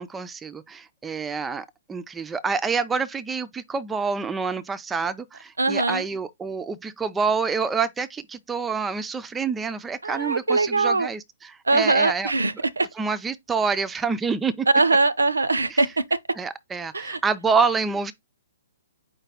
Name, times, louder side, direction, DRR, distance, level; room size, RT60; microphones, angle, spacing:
voice 1, 0.0-12.3 13.0-14.7 15.7-15.8 16.4-18.1, right 5 dB, 10° right, 0.4 m, -27 dB
voice 2, 5.6-6.0 10.0-11.1 11.7-12.9 14.7-16.2 16.9-17.2, right 3 dB, 75° right, 0.5 m, -22 dB
4.8 x 2.2 x 4.7 m
figure-of-eight pair, 125°, 0 cm